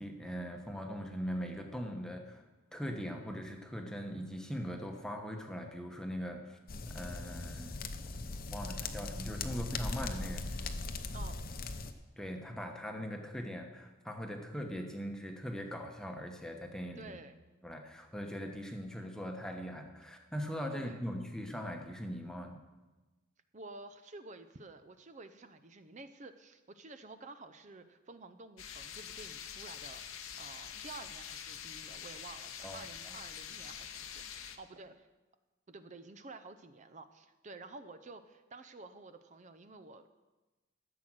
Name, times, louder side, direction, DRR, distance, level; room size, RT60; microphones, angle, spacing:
voice 1, 0.0-2.4 2.7-6.6 6.9-7.8 8.5-10.7 12.2-17.1 17.6-22.6 32.6-32.8 33.1-33.2, equal, 5° left, 3 dB, 1.0 m, -40 dB
sound 1, 6.7-11.9, left 3 dB, 45° left, 0.7 m, -39 dB
voice 2, 17.0-17.4 20.7-21.0 23.5-30.0 30.3-35.1 35.7-40.1, right 3 dB, 35° right, 10 dB, 0.5 m, -51 dB
sound 2, 28.6-34.6, left 8 dB, 75° left, 0.9 m, -45 dB
13.5 x 7.5 x 6.2 m, 1.2 s
head